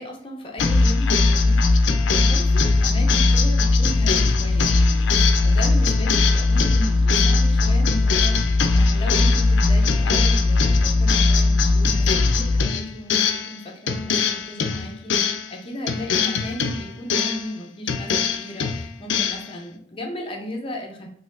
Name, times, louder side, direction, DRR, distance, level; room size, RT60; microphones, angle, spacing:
voice 1, 0.0-21.1, equal, 30° left, 0 dB, 0.6 m, -36 dB
sound 1, 0.6-13.6 13.9-15.5 15.9-17.5 17.9-19.5, left 3 dB, 75° left, 0.4 m, -19 dB
3.9 x 2.7 x 2.6 m, 0.65 s
head